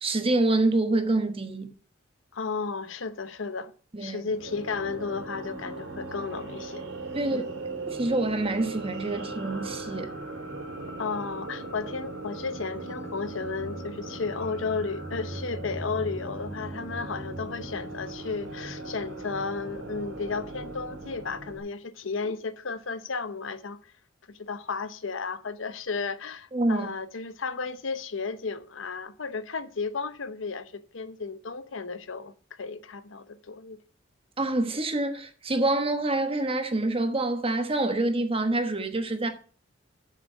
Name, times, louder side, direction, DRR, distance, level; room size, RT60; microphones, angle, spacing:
voice 1, 0.0-1.7 3.9-4.2 7.1-7.4 7.8-10.1 26.5-26.9 34.4-39.3, right 2 dB, 30° right, 1.2 m, -26 dB
voice 2, 2.3-3.7 4.0-6.8 7.2-7.6 11.0-23.9 24.3-33.8, left 4 dB, 90° left, 0.8 m, -33 dB
sound 1, 4.3-21.6, right 2 dB, 90° right, 3.3 m, -38 dB
7.3 x 6.7 x 7.3 m
head